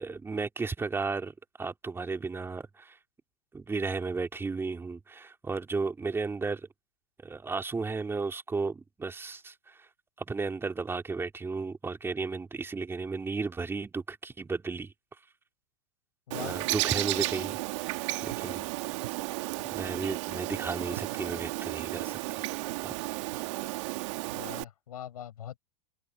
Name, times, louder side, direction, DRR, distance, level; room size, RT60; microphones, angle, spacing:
voice 1, 0.0-3.0 3.5-6.7 7.2-9.8 10.2-14.9 16.4-17.6 17.9-18.7 19.7-22.5 22.8-22.9, right 4 dB, 10° right, 3.3 m, -34 dB
Bird, 16.3-24.6, right 23 dB, 55° right, 1.9 m, -33 dB
voice 2, 24.3-25.6, left 10 dB, 80° left, 7.9 m, -42 dB
hypercardioid pair, 115°, 19 cm